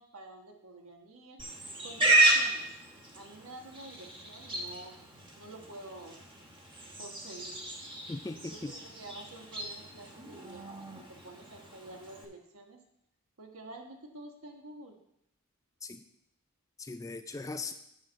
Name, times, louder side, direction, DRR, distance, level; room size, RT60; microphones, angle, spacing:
voice 1, 0.0-1.4 1.8-2.7 3.1-5.0 5.4-6.2 7.0-7.7 8.3-12.8 13.4-15.0, right 2 dB, 70° right, 3 dB, 1.3 m, -49 dB
Livestock farm animals working animals, 1.4-12.3, right 1 dB, 20° right, 1.1 m, -32 dB
voice 2, 8.1-8.7 15.8-16.0 16.8-17.7, left 3 dB, 15° left, 8 dB, 0.3 m, -39 dB
8.3 x 4.4 x 6.3 m, 0.79 s
head